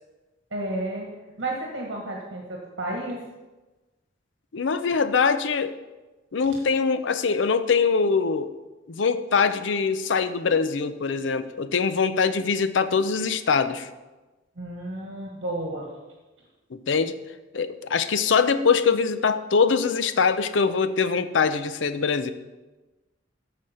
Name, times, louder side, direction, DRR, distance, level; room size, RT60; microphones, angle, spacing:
voice 1, 0.5-1.1 1.4-3.2 14.6-15.9, right 1 dB, 75° right, -1 dB, 1.4 m, -31 dB
voice 2, 4.5-5.8 6.3-8.5 8.9-13.9 16.7-17.2 17.5-22.3, left 5 dB, 75° left, 12 dB, 0.5 m, -23 dB
14.0 x 5.1 x 4.3 m, 1.2 s
head